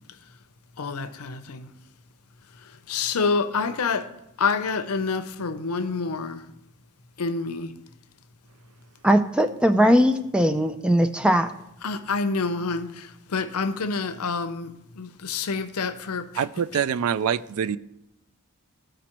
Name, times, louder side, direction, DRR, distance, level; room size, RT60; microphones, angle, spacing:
voice 1, 0.8-1.7 2.9-4.1 4.4-6.5 7.2-7.7 11.8-16.4 16.7-16.8, left 4 dB, 85° left, 0.6 m, -27 dB
voice 2, 9.0-11.5, equal, 5° right, 0.4 m, -19 dB
voice 3, 16.4-17.8, right 8 dB, 80° right, 0.3 m, -25 dB
14.5 x 5.1 x 3.0 m
head